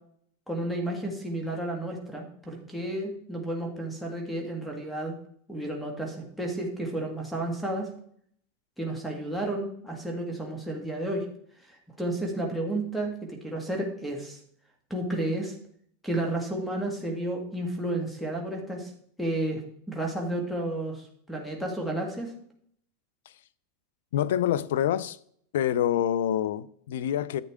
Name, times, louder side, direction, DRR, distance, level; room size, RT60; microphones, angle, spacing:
voice 1, 0.5-5.2 5.5-7.9 8.8-11.3 11.7-14.4 14.9-15.5 16.0-18.9 19.2-19.6 19.9-22.3, right 1 dB, 5° left, 1.8 m, -32 dB
voice 2, 24.1-25.2 25.5-27.4, left 10 dB, 80° left, 0.5 m, -26 dB
10.5 x 8.2 x 3.6 m
supercardioid pair, 140°, 0 cm